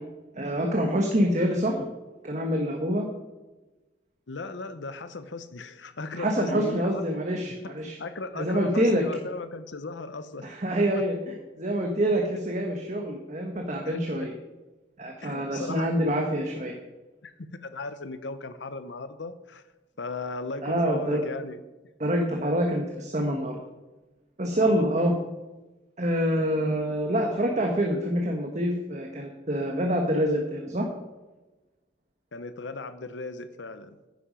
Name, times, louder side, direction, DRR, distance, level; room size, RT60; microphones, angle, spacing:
voice 1, 0.3-1.8 2.2-3.1 6.2-8.0 8.3-9.1 10.4-14.3 15.0-16.7 20.6-21.2 22.0-23.6 24.4-25.1 26.0-30.9, equal, 40° right, 1 dB, 1.3 m, -26 dB
voice 2, 4.3-7.0 7.6-7.7 8.0-10.5 10.9-11.0 13.9-14.3 15.2-15.9 17.2-19.6 20.0-21.6 24.6-25.0 32.3-34.0, left 3 dB, 80° left, 11 dB, 0.8 m, -37 dB
10.5 x 10.0 x 5.1 m, 1.1 s
head